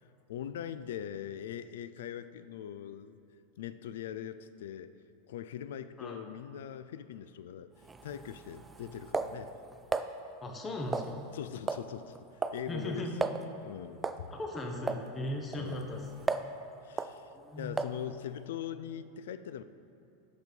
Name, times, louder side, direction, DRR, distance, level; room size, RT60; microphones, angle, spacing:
voice 1, 0.0-3.2 3.6-4.9 5.3-7.7 8.0-9.6 11.3-13.1 13.6-14.3 15.6-15.9 16.8-19.6, left 10 dB, 80° left, 13 dB, 0.3 m, -41 dB
sound 1, 7.8-10.1 10.9-11.4 11.7-11.9 12.2-12.6 12.9-13.0 13.2-13.4 14.0-14.3 14.9-15.0 15.5-16.6 17.0-17.2 17.8-18.0, right 3 dB, 15° right, 0.3 m, -35 dB
voice 2, 10.4-11.2 12.7-13.2 14.3-16.1 17.3-17.8, left 1 dB, 20° left, 2 dB, 1.0 m, -38 dB
8.1 x 6.1 x 5.3 m, 2.8 s
supercardioid pair, 120°, 0 cm